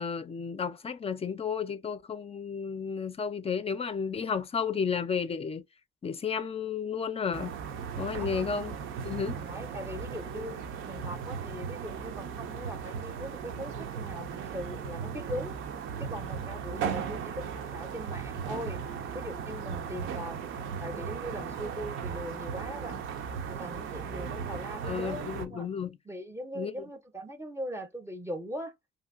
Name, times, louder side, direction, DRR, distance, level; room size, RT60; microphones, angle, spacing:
voice 1, 0.0-5.6 6.0-7.6 8.0-8.8 9.0-9.4 24.8-26.0 26.6-26.7, left 6 dB, 30° left, 0.4 m, -32 dB
sound 1, 7.3-25.5, right 7 dB, 80° right, 0.6 m, -37 dB
voice 2, 8.2-8.5 9.3-10.6 10.8-15.6 16.0-18.8 19.1-23.0 23.5-25.7 26.1-28.7, equal, 15° right, 0.6 m, -40 dB
2.9 x 2.6 x 2.5 m
cardioid pair, 90°, 20 cm